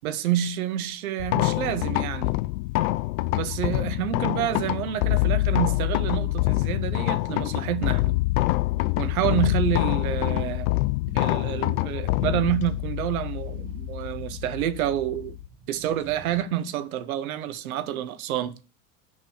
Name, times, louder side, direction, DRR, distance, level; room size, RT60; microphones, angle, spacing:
voice 1, 0.0-2.3 3.3-8.2 9.0-10.7 11.1-15.4 15.7-18.6, right 11 dB, 85° right, 1.0 m, -28 dB
sound 1, 1.2-15.5, left 20 dB, 65° left, 0.6 m, -26 dB
sound 2, 3.5-16.4, right 4 dB, 55° right, 2.4 m, -49 dB
6.3 x 5.4 x 7.1 m
supercardioid pair, 105°, 42 cm